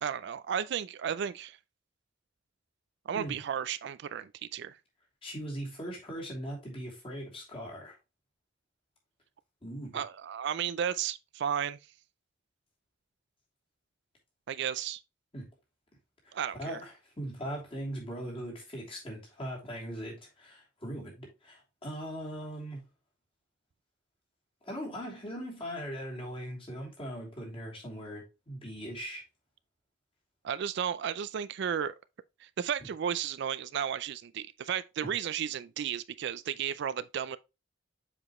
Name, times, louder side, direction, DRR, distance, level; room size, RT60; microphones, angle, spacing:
voice 1, 0.0-1.6 3.1-4.8 9.9-11.8 14.5-15.0 16.3-16.8 30.4-31.9 32.4-37.4, right 8 dB, 65° right, 0.4 m, -33 dB
voice 2, 5.2-7.9 9.6-10.0 15.3-15.5 16.2-22.8 24.6-29.2 35.0-35.1, equal, 30° left, 2.9 m, -40 dB
7.3 x 4.9 x 3.0 m
head